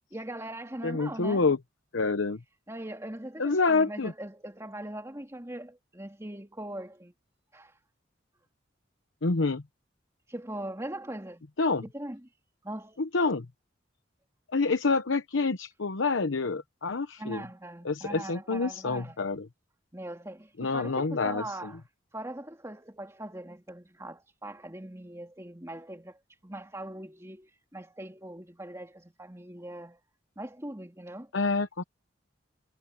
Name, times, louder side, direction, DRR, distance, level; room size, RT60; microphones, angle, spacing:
voice 1, 0.1-1.5 2.7-7.1 7.5-7.8 10.3-11.5 11.8-12.3 12.6-13.0 17.2-19.2 19.9-21.8 22.1-30.0 30.4-31.3, right 1 dB, 15° right, 3.1 m, -41 dB
voice 2, 0.8-1.6 1.9-2.4 3.4-4.1 9.2-9.6 11.6-11.8 13.0-13.5 14.5-17.4 17.8-19.5 20.6-21.7 31.3-31.8, left 3 dB, 90° left, 0.9 m, -27 dB
head